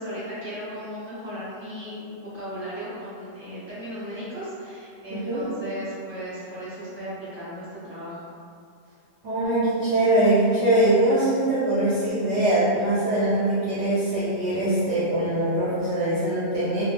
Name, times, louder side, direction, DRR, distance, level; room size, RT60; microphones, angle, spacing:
voice 1, 0.0-2.1 2.3-8.2, equal, 10° right, -11 dB, 0.8 m, -36 dB
voice 2, 5.1-5.4 9.2-16.8, right 1 dB, 60° right, -11 dB, 0.8 m, -22 dB
2.5 x 2.1 x 3.2 m, 2.4 s
omnidirectional pair, 1.5 m